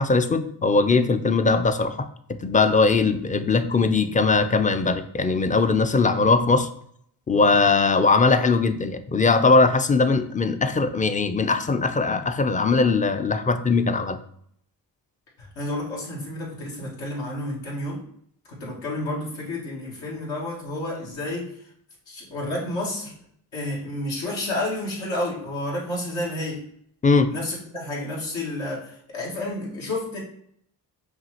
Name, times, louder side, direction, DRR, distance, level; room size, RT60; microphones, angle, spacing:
voice 1, 0.0-2.1 2.4-6.7 7.3-14.2 27.0-27.3, left 4 dB, 20° left, 9 dB, 0.4 m, -20 dB
voice 2, 15.4-18.0 18.5-21.5 22.1-23.1 23.5-26.6 27.3-30.2, left 1 dB, 80° left, -5 dB, 1.7 m, -30 dB
5.6 x 2.5 x 2.8 m, 0.68 s
supercardioid pair, 50°, 45 cm